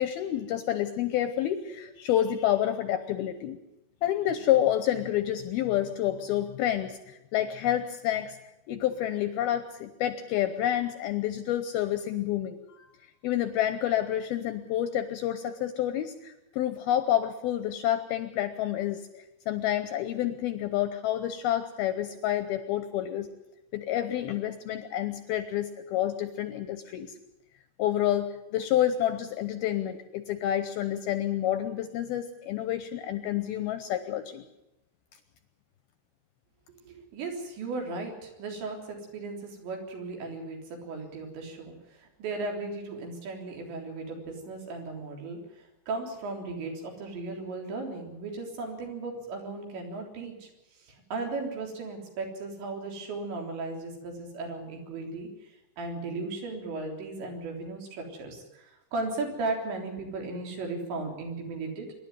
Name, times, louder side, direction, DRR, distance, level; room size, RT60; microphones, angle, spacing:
voice 1, 0.0-3.6 4.0-8.4 8.7-12.9 13.2-23.3 23.7-27.1 27.8-34.4, left 12 dB, 75° left, 10 dB, 2.3 m, -29 dB
voice 2, 36.8-50.5 50.8-61.9, right 3 dB, 75° right, 2 dB, 5.8 m, -36 dB
25.0 x 11.5 x 9.4 m, 0.92 s
omnidirectional pair, 5.3 m